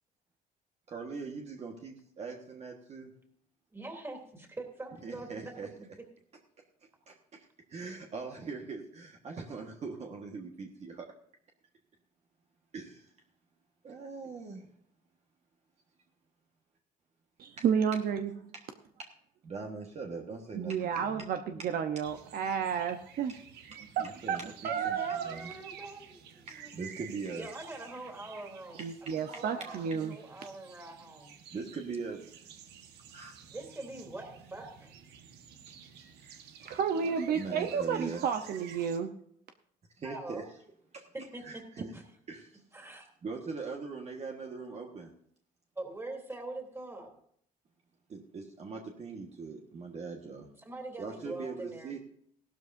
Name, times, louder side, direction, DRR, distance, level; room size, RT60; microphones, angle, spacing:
voice 1, 0.9-3.1 5.0-5.7 7.1-11.1 12.7-13.1 13.8-14.7 17.6-17.7 18.5-18.6 19.0-19.1 19.4-21.2 24.0-25.0 25.2-25.5 26.5-27.5 28.8-28.9 29.3-29.4 31.5-32.4 33.1-33.3 35.7-36.1 36.4-36.8 37.3-38.3 40.0-40.5 40.9-41.1 41.4-42.6 43.2-45.1 48.1-50.5 51.0-52.0, right 4 dB, 40° right, 1 dB, 1.5 m, -41 dB
voice 2, 3.7-5.9 24.6-26.7 27.3-28.8 29.3-29.8 30.1-31.4 33.5-34.9 40.0-40.4 41.3-41.4 42.7-43.1 45.8-47.1 50.6-51.9, right 2 dB, 15° right, 2 dB, 3.2 m, -43 dB
voice 3, 17.4-18.5 20.5-23.3 23.8-25.4 28.8-30.1 36.6-39.1, right 7 dB, 60° right, 7 dB, 0.9 m, -31 dB
sound 1, 22.0-39.0, right 8 dB, 80° right, 1.4 m, -52 dB
16.5 x 12.5 x 2.7 m, 0.66 s
cardioid pair, 110°, 17 cm